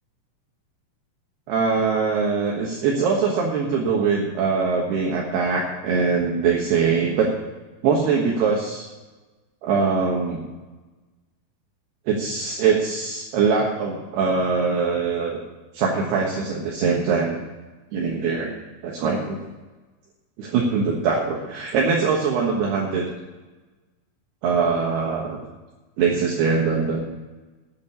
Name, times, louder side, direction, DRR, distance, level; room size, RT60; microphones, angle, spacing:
voice 1, 1.5-7.3 7.8-8.9 9.6-10.4 12.1-15.4 15.7-17.4 17.9-18.6 18.8-19.5 20.4-23.1 24.4-25.4 26.0-27.0, right 5 dB, 70° right, -2 dB, 3.1 m, -22 dB
9.1 x 8.4 x 8.1 m, 1.2 s
omnidirectional pair, 5.3 m